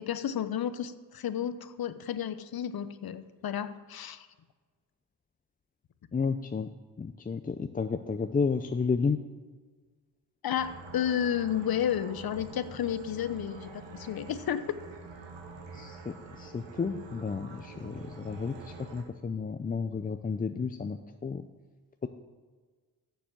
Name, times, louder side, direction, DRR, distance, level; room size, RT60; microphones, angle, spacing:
voice 1, 0.0-4.3 10.4-14.8, left 9 dB, 55° left, 13 dB, 0.8 m, -32 dB
voice 2, 6.1-6.7 7.0-9.2 15.7-21.4, left 5 dB, 20° left, 8 dB, 0.5 m, -32 dB
sound 1, 10.6-19.0, right 4 dB, 75° right, 1.5 m, -46 dB
7.0 x 7.0 x 7.5 m, 1.4 s
supercardioid pair, 50°, 44 cm